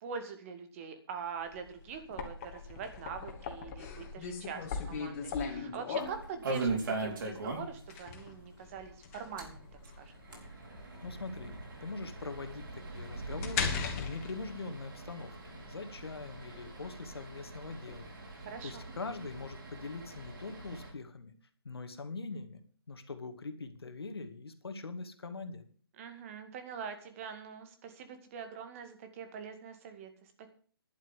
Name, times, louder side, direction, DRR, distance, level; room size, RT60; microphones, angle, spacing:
voice 1, 0.0-9.7 10.0-10.2 18.4-18.9 26.0-30.5, right 6 dB, 35° right, 8 dB, 2.2 m, -44 dB
sound 1, 1.5-18.0, left 6 dB, 35° left, 2.7 m, -40 dB
sound 2, 6.0-8.0 8.2-8.3 8.6-8.7 9.2-20.9, right 3 dB, 55° right, 4.9 m, -41 dB
voice 2, 11.0-11.6 11.8-21.3 21.6-22.6 22.9-25.6, left 3 dB, 75° left, 8 dB, 2.3 m, -43 dB
11.5 x 8.1 x 8.4 m, 0.44 s
figure-of-eight pair, 145°, 13 cm